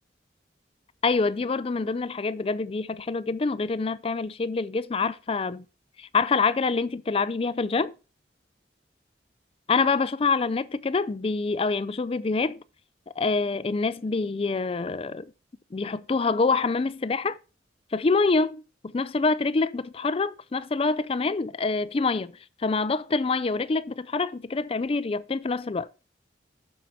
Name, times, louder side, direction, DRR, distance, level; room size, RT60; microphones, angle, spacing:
voice 1, 1.0-5.6 6.0-7.9 9.7-12.6 13.2-15.3 15.7-17.4 17.9-18.6 18.9-22.3 22.6-25.9, left 4 dB, 30° left, 0.4 m, -26 dB
7.6 x 6.6 x 4.1 m
head